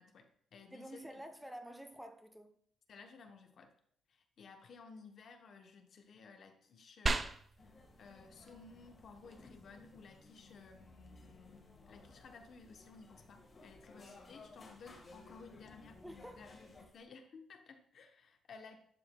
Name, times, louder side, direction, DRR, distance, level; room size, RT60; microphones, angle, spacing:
voice 1, 0.0-1.2 2.9-3.7 4.1-18.8, left 4 dB, 60° left, 0.8 m, -56 dB
voice 2, 0.7-2.5 16.0-16.4, right 1 dB, 5° right, 0.7 m, -49 dB
sound 1, 7.1-17.1, right 3 dB, 30° right, 0.4 m, -45 dB
sound 2, 7.6-16.9, left 3 dB, 35° left, 1.5 m, -58 dB
11.5 x 4.8 x 2.2 m
cardioid pair, 90°, 0 cm